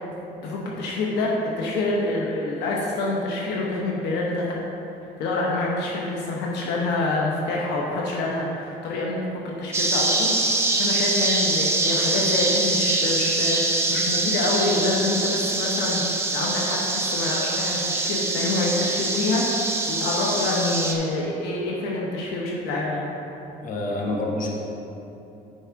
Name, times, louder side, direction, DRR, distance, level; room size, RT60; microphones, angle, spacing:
voice 1, 0.4-4.5 5.2-9.2 9.6-23.1, left 2 dB, 85° left, -3 dB, 1.0 m, -26 dB
sound 1, 9.7-20.9, right 2 dB, 15° right, 0.8 m, -24 dB
voice 2, 23.6-24.5, left 2 dB, 55° left, -2 dB, 1.4 m, -27 dB
9.6 x 5.5 x 3.6 m, 3.0 s
cardioid pair, 110°, 17 cm